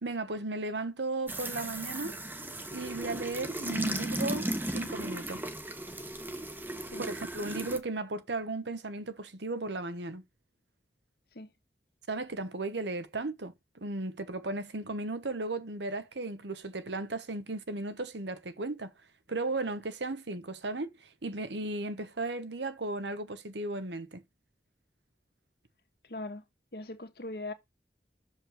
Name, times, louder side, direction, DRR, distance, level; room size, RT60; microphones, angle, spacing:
voice 1, 0.0-2.1 2.7-5.4 7.0-10.2 12.1-18.9 19.3-24.2, right 2 dB, 85° right, 1.1 m, -35 dB
sound 1, 1.3-7.8, right 1 dB, 10° right, 0.9 m, -36 dB
voice 2, 26.0-26.4 26.7-27.5, left 2 dB, 60° left, 1.3 m, -40 dB
6.6 x 5.4 x 6.7 m
head